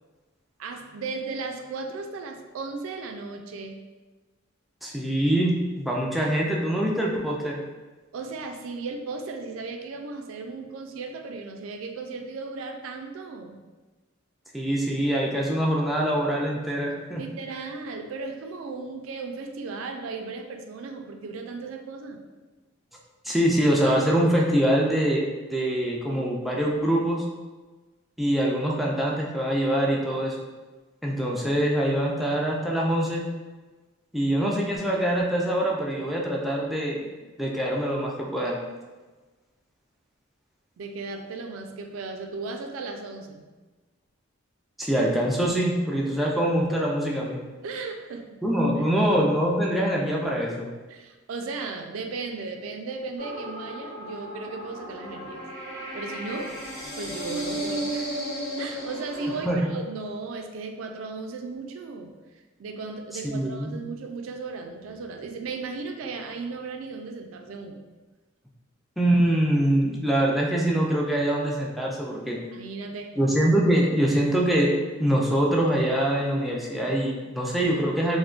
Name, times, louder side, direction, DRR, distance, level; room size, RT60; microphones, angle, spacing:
voice 1, 0.6-3.8 8.1-13.6 17.2-22.2 40.8-43.5 47.6-48.3 50.9-55.4 55.9-56.6 57.0-58.2 58.6-62.1 62.6-67.8 72.5-73.1, right 4 dB, 85° right, 4 dB, 0.3 m, -36 dB
voice 2, 4.8-7.6 14.5-17.2 23.2-27.2 28.2-30.4 31.0-33.2 34.1-37.0 37.4-38.6 44.8-47.4 48.4-50.7 59.5-59.7 63.2-63.8 69.0-72.4 73.2-74.7 75.0-78.2, right 1 dB, ahead, -3 dB, 0.3 m, -24 dB
sound 1, 53.2-59.4, right 1 dB, 75° left, 1.3 m, -34 dB
3.5 x 2.1 x 2.4 m, 1.2 s
head